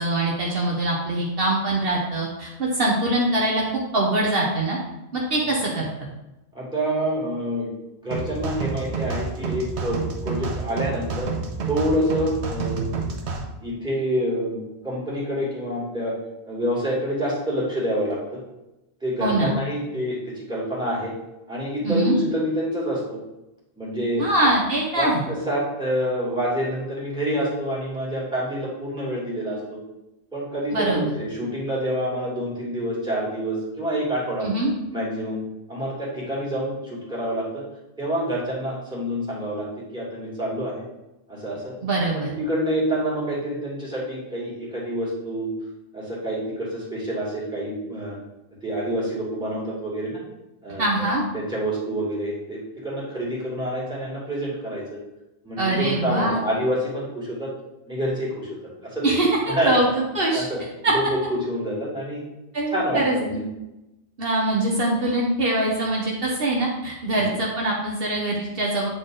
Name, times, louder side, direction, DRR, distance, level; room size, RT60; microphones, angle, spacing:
voice 1, 0.0-3.6 3.9-4.8 5.1-5.9 19.2-19.5 21.8-22.2 24.2-25.2 30.7-31.1 34.4-34.7 41.8-42.3 50.8-51.2 55.6-56.4 59.0-60.5 60.8-60.9 62.5-63.4 64.2-68.9, right 1 dB, 60° right, -2 dB, 1.2 m, -23 dB
voice 2, 6.5-7.7 8.0-11.3 11.7-12.9 13.6-16.1 16.5-18.4 19.0-21.1 21.5-23.2 23.8-24.2 25.0-29.8 30.3-34.5 34.9-35.4 35.7-37.6 38.0-39.7 39.9-40.8 41.3-41.7 42.1-45.5 45.9-48.2 48.6-50.2 50.6-54.8 55.4-57.5 57.9-58.5 58.9-59.2 59.5-59.8 60.3-60.6 60.9-62.2 62.7-63.4 67.1-67.3, equal, 5° right, -7 dB, 2.5 m, -27 dB
sound 1, 8.1-13.4, right 4 dB, 75° right, 1.2 m, -29 dB
8.7 x 4.0 x 3.8 m, 0.95 s
omnidirectional pair, 1.2 m